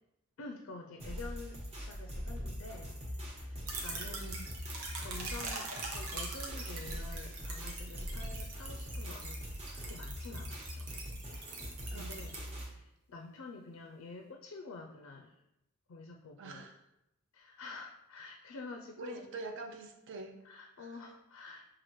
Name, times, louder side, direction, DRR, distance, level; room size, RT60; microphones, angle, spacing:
voice 1, 0.4-4.3 5.0-9.4 9.7-11.0 11.9-15.4 15.9-16.7 17.3-19.2 20.4-21.7, left 3 dB, 70° left, 3 dB, 0.4 m, -48 dB
sound 1, 1.0-12.7, equal, 30° right, 0.9 m, -42 dB
sound 2, 3.7-12.4, right 3 dB, 85° right, 0.9 m, -43 dB
voice 2, 4.0-4.5 11.9-12.1 16.4-16.8 19.0-20.4 20.8-21.0, right 3 dB, 60° right, 4 dB, 0.4 m, -45 dB
5.7 x 2.4 x 3.0 m, 0.86 s
head